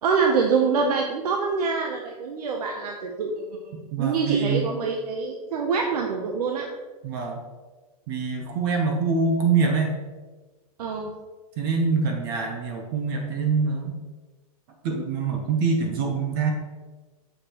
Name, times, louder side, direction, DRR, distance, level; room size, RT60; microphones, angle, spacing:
voice 1, 0.0-6.7 10.8-11.1, right 5 dB, 85° right, 1 dB, 0.7 m, -25 dB
voice 2, 3.9-4.7 7.0-7.4 8.1-9.9 11.6-14.0 14.8-16.5, right 4 dB, 35° right, 2 dB, 0.8 m, -24 dB
6.6 x 4.9 x 2.9 m, 1.3 s
supercardioid pair, 170°, 19 cm